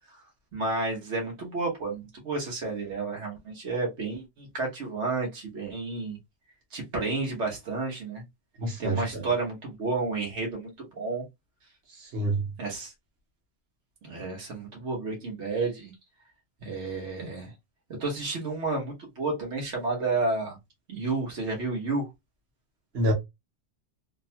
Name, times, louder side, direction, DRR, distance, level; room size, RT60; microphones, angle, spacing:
voice 1, 0.5-6.2 6.7-8.2 8.8-11.2 12.6-12.9 14.0-15.9 16.6-17.5 18.0-20.6 20.9-22.1, right 3 dB, 85° right, 1.3 m, -31 dB
voice 2, 8.6-9.2 12.1-12.4 22.9-23.1, right 1 dB, 60° right, 1.2 m, -27 dB
2.9 x 2.1 x 2.7 m
omnidirectional pair, 1.2 m